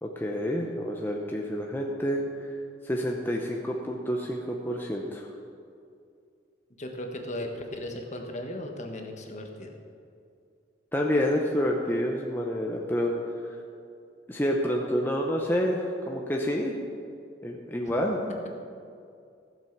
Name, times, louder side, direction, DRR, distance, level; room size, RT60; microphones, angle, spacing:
voice 1, 0.0-2.5 2.8-5.3 10.9-13.1 14.3-16.7 17.4-18.2, equal, 10° left, -1 dB, 0.8 m, -28 dB
voice 2, 6.8-9.7, left 1 dB, 40° left, 3 dB, 1.3 m, -36 dB
15.5 x 7.4 x 6.0 m, 2.4 s
head